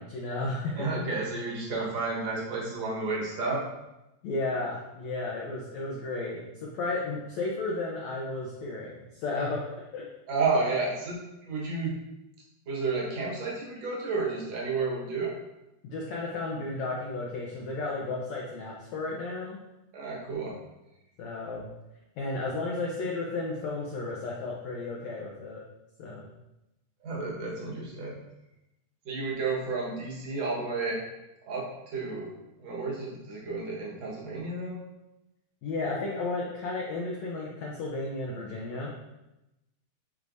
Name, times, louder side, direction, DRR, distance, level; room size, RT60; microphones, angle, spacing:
voice 1, 0.0-0.7 4.2-9.6 9.9-10.0 15.8-19.6 21.2-21.7 22.2-25.6 26.0-26.3 35.6-38.9, left 3 dB, 90° left, -2 dB, 1.5 m, -33 dB
voice 2, 0.7-3.6 10.3-12.0 12.7-15.3 19.9-20.6 27.0-28.2 29.1-31.0 31.5-32.3 32.6-34.8, right 3 dB, 55° right, -4 dB, 2.1 m, -31 dB
10.0 x 4.7 x 2.7 m, 0.94 s
omnidirectional pair, 4.4 m